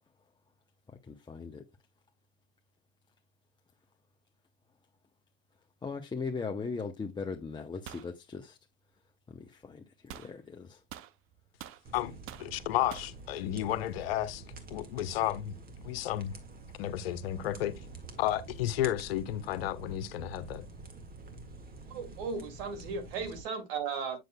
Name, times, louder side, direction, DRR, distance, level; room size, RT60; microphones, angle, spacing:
voice 1, 1.1-1.6 5.8-8.5 9.7-9.8 10.1-10.7, left 4 dB, 15° left, 0.7 m, -38 dB
sound 1, 7.9-8.1 10.1-10.3 10.9-11.8 12.3-12.5 12.9-13.2, right 11 dB, 45° right, 0.7 m, -46 dB
sound 2, 11.8-23.4, right 3 dB, 30° right, 1.8 m, -48 dB
voice 2, 12.4-14.4 14.7-15.5 15.8-16.3 16.8-17.7 18.2-20.6, left 13 dB, 80° left, 0.8 m, -32 dB
voice 3, 21.9-24.2, right 5 dB, 75° right, 2.3 m, -36 dB
7.7 x 6.6 x 2.2 m
hypercardioid pair, 95°, 30 cm